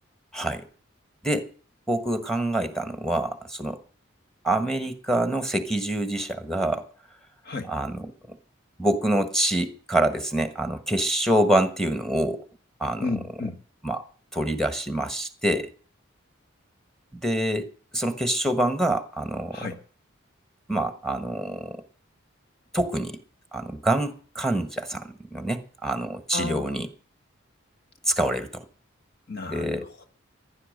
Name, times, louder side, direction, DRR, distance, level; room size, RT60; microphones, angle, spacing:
voice 1, 0.3-0.7 1.2-1.5 1.9-3.8 4.4-6.8 7.7-8.4 8.8-12.4 12.8-13.1 13.8-14.0 14.3-15.7 17.1-17.7 17.9-19.6 20.7-21.8 22.7-23.2 23.5-26.9 28.1-28.6 29.5-29.9, right 1 dB, ahead, 1.3 m, -26 dB
voice 2, 13.0-13.6 19.5-19.8 26.3-26.9 29.3-30.0, left 3 dB, 50° left, 1.4 m, -33 dB
15.5 x 11.0 x 6.5 m
head